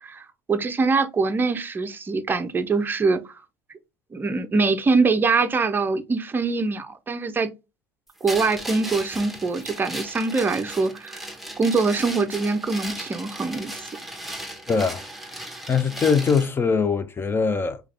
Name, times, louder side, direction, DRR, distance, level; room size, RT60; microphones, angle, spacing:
voice 1, 0.0-3.2 4.1-7.5 8.2-11.2 11.6-13.7, right 4 dB, 20° right, 0.6 m, -23 dB
sound 1, 8.3-16.5, right 1 dB, ahead, 1.0 m, -36 dB
voice 2, 14.7-15.0 15.7-17.8, left 5 dB, 20° left, 0.6 m, -22 dB
4.8 x 2.3 x 3.3 m
figure-of-eight pair, 65°, 11 cm